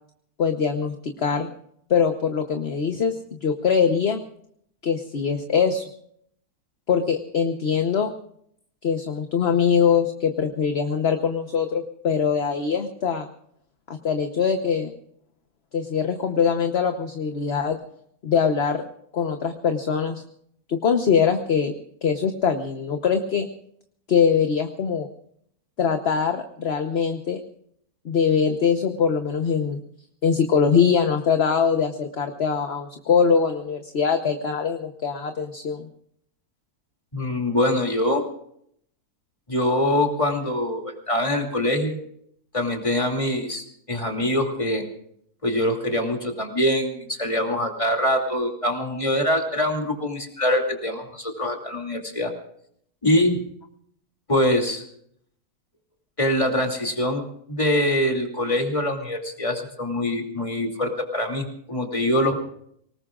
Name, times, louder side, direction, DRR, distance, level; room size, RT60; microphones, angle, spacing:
voice 1, 0.4-1.5 1.9-3.1 3.4-4.2 4.8-5.8 6.9-8.1 8.8-13.3 14.0-14.9 15.7-17.8 18.2-18.8 19.1-20.2 20.7-21.7 22.0-23.5 24.1-25.1 25.8-27.4 28.0-29.8 30.2-35.9, left 6 dB, 45° left, 6 dB, 1.2 m, -22 dB
voice 2, 37.1-38.2 39.5-42.0 42.5-44.9 45.4-52.3 53.0-53.4 54.3-54.8 56.2-62.4, left 1 dB, 20° left, 2 dB, 2.7 m, -24 dB
25.5 x 19.0 x 2.5 m, 0.67 s
omnidirectional pair, 1.6 m